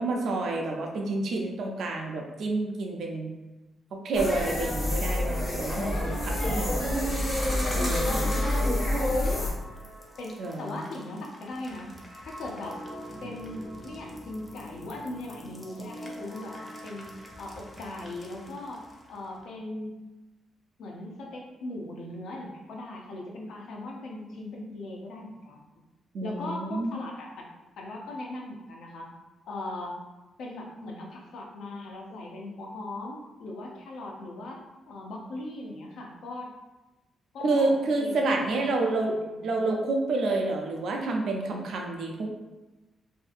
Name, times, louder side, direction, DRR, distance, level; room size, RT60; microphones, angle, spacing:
voice 1, 0.0-3.3 3.9-7.0 7.7-8.3 10.4-10.8 26.1-26.9 37.4-39.1 39.4-42.3, right 2 dB, 65° right, 1 dB, 0.4 m, -29 dB
sound 1, 4.1-9.5, left 1 dB, 40° left, 0.8 m, -27 dB
voice 2, 6.0-6.7 7.8-9.5 10.2-11.9 12.2-12.8 13.2-17.1 17.4-19.9 20.8-25.8 26.2-27.5 27.8-29.1 29.5-30.0 30.4-34.6 34.9-36.5 37.3-37.7 38.0-39.5, left 2 dB, 80° left, -1 dB, 0.5 m, -39 dB
sound 2, 7.6-19.5, equal, 15° left, 0.4 m, -44 dB
2.6 x 2.5 x 2.4 m, 1.1 s
cardioid pair, 140°, 0 cm